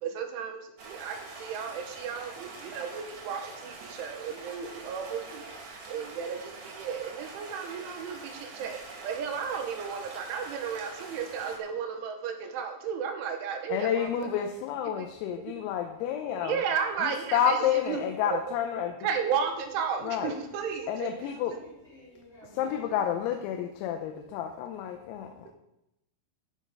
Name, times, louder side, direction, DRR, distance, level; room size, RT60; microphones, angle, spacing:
voice 1, 0.0-5.4 5.9-14.3 15.0-15.1 16.3-18.3 19.0-21.1 25.5-25.6, right 7 dB, 75° right, 4 dB, 3.4 m, -34 dB
Stream, 0.8-11.6, right 3 dB, 50° right, 2.1 m, -45 dB
voice 2, 13.7-16.6 17.0-18.9 20.0-20.4 20.9-21.5 22.5-25.5, left 9 dB, 90° left, 4 dB, 3.7 m, -30 dB
voice 3, 21.1-23.4, left 1 dB, 25° left, -5 dB, 3.9 m, -53 dB
14.0 x 7.4 x 5.5 m, 0.87 s
omnidirectional pair, 6.0 m